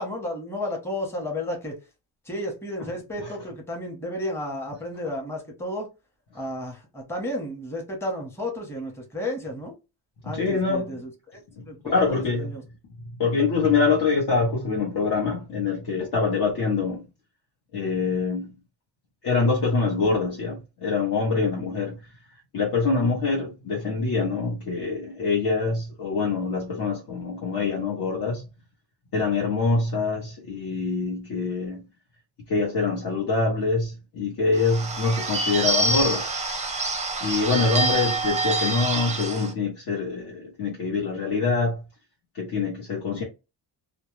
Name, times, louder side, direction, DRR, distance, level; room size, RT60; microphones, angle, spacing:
voice 1, 0.0-1.7 2.3-5.9 6.3-9.7 10.2-11.0 11.6-12.6, left 1 dB, 5° left, 0.8 m, -32 dB
voice 2, 10.2-11.0 11.6-12.5 13.0-17.1 17.7-18.5 19.2-22.0 22.5-28.5 29.1-31.9 32.5-36.3 37.2-41.8 42.3-43.2, left 4 dB, 60° left, 0.8 m, -25 dB
Bird / Bell, 34.5-39.5, right 2 dB, 15° right, 0.5 m, -26 dB
2.2 x 2.0 x 3.0 m
cardioid pair, 95°, 44 cm